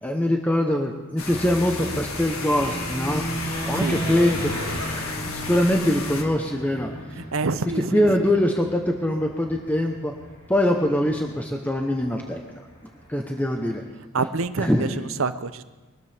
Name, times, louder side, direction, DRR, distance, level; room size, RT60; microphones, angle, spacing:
voice 1, 0.0-3.2 3.7-4.5 5.3-6.9 7.9-10.1 10.5-12.4 13.1-13.8 14.6-14.9, left 1 dB, 5° left, 2 dB, 0.9 m, -23 dB
sound 1, 1.2-6.2, left 3 dB, 75° left, 1.5 m, -34 dB
sound 2, 1.3-13.8, equal, 40° left, 5.0 m, -35 dB
voice 2, 7.2-8.4 14.1-15.6, right 4 dB, 65° right, 12 dB, 0.7 m, -27 dB
23.0 x 13.0 x 3.5 m, 1.2 s
head